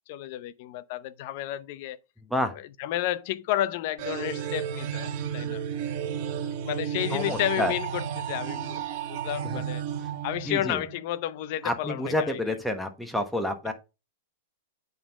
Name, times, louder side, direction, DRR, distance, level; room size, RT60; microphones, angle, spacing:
voice 1, 0.1-2.0 2.5-5.6 6.6-8.8 9.1-9.8 10.2-12.4, left 13 dB, 50° left, 0.7 m, -31 dB
sound 1, 4.0-11.0, right 9 dB, 50° right, 1.0 m, -33 dB
voice 2, 7.1-7.7 9.4-9.6 10.5-10.8 11.6-13.7, left 1 dB, ahead, 1.2 m, -29 dB
8.5 x 3.9 x 5.1 m
hypercardioid pair, 135°, 0 cm